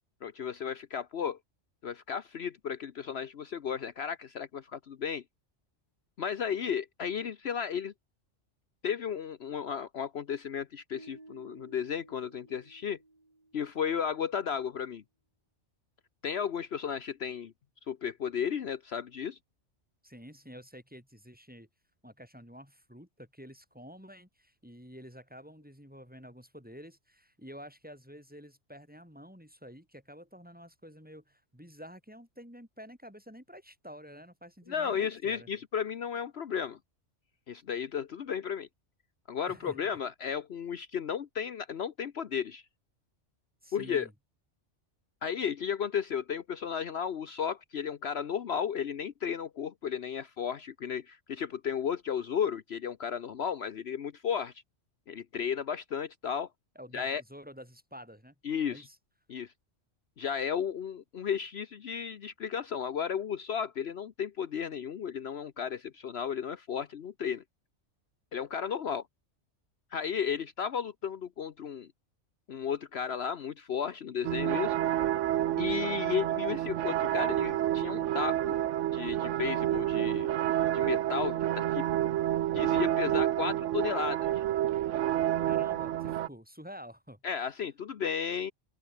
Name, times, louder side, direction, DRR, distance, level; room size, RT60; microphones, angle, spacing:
voice 1, 0.2-1.4 1.8-5.2 6.2-7.9 8.8-13.0 13.5-15.0 16.2-17.5 17.9-19.4 34.7-36.8 37.5-38.7 39.3-42.6 43.7-44.1 45.2-54.5 55.1-56.5 56.9-57.2 58.4-58.9 59.3-59.5 60.2-67.4 68.3-69.0 69.9-71.9 72.5-74.8 75.6-78.6 78.9-80.4 80.7-81.9 82.5-84.4 87.2-88.5, left 7 dB, 60° left, 1.1 m, -34 dB
sound 1, 10.9-14.1, right 2 dB, 30° right, 3.1 m, -55 dB
voice 2, 20.0-21.7 22.0-35.5 39.5-39.8 43.6-44.1 56.8-58.3 58.7-59.0 85.4-87.5, equal, 5° right, 6.9 m, -49 dB
sound 2, 74.2-86.3, right 12 dB, 90° right, 1.0 m, -29 dB
open air
omnidirectional pair, 1.2 m